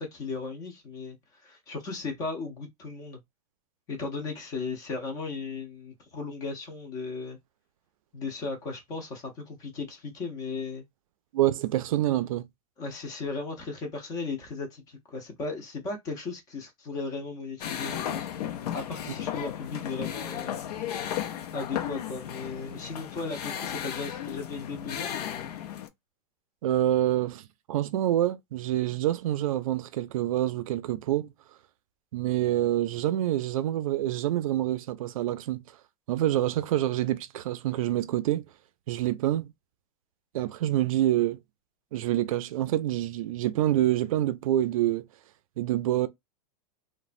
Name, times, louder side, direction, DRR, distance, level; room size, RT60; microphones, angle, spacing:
voice 1, 0.0-3.2 3.9-7.4 8.1-10.8 12.8-18.3 18.7-20.6 21.5-25.5, left 4 dB, 20° left, 0.5 m, -36 dB
voice 2, 11.3-12.5 26.6-31.3 32.1-35.6 36.1-38.4 38.9-39.5 40.3-41.4 41.9-45.0 45.6-46.1, right 13 dB, 60° right, 0.4 m, -26 dB
sound 1, 17.6-25.9, left 10 dB, 85° left, 0.6 m, -35 dB
3.1 x 2.1 x 2.4 m
supercardioid pair, 175°, 20 cm